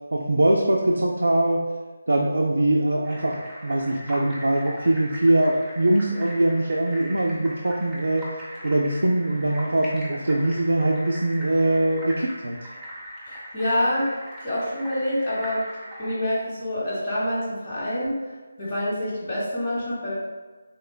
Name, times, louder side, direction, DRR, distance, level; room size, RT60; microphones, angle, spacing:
voice 1, 0.1-1.6 2.1-8.3 8.6-12.6, right 1 dB, 85° right, 0 dB, 0.3 m, -22 dB
Glacial Lagoon Jökulsárlón, 3.0-16.2, equal, 5° right, 0.5 m, -40 dB
voice 2, 13.3-14.1 14.4-15.6 16.0-18.3 18.6-20.1, left 1 dB, 40° left, -8 dB, 0.8 m, -26 dB
3.5 x 2.2 x 2.2 m, 1.3 s
figure-of-eight pair, 160°, 0 cm